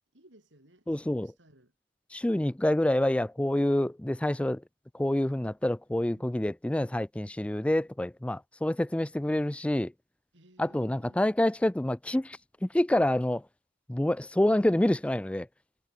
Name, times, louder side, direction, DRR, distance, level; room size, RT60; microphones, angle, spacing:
voice 1, 0.1-1.7 6.1-6.4 10.3-11.4, right 1 dB, 85° right, 5.6 m, -59 dB
voice 2, 0.9-1.3 2.1-4.6 4.9-9.9 10.6-13.4 13.9-15.5, left 1 dB, 5° left, 0.3 m, -27 dB
head